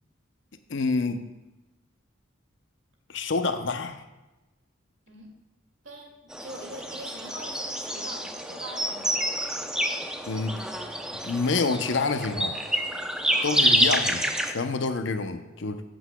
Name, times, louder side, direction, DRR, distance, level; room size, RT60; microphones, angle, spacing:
voice 1, 0.7-1.2 3.1-4.0 10.2-10.6 11.2-12.6 13.4-15.8, left 4 dB, 65° left, 8 dB, 0.7 m, -27 dB
voice 2, 5.8-9.2 13.3-13.6, right 2 dB, 75° right, -1 dB, 2.3 m, -43 dB
sound 1, 6.3-14.5, equal, 5° right, 0.6 m, -28 dB
14.0 x 8.0 x 2.2 m, 1.1 s
head